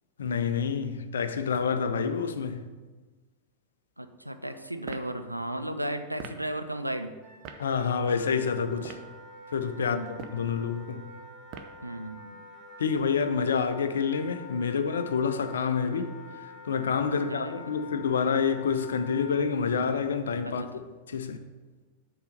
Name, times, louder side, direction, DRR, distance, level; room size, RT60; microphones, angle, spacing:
voice 1, 0.2-2.6 7.6-9.0 9.5-10.0 10.3-11.1 12.8-16.1 16.4-20.6 21.1-21.4, left 6 dB, 65° left, 0.5 m, -28 dB
voice 2, 4.0-7.1 9.8-10.2 11.8-12.4 17.3-17.9 20.4-20.8, right 1 dB, 90° right, 0.4 m, -35 dB
sound 1, 4.8-5.1 6.2-6.4 7.4-7.6 8.7-9.1 10.1-10.5 11.5-11.8, right 6 dB, 40° right, 0.6 m, -42 dB
Wind instrument woodwind instrument, 7.2-19.4, left 2 dB, 20° right, 2.4 m, -47 dB
6.9 x 4.0 x 6.4 m
figure-of-eight pair, 90°, 0 cm